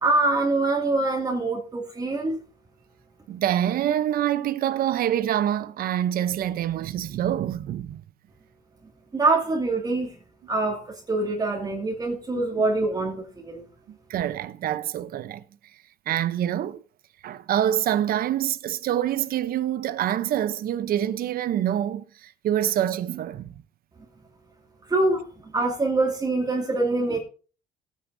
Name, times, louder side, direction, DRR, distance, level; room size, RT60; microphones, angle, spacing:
voice 1, 0.0-2.4 9.1-10.1 10.5-13.6 24.9-27.2, right 2 dB, 25° right, 2.4 m, -24 dB
voice 2, 3.3-8.0 13.9-15.4 16.1-16.8 17.2-23.6, right 11 dB, 60° right, 0.8 m, -26 dB
17.5 x 9.4 x 2.7 m
cardioid pair, 110°, 17 cm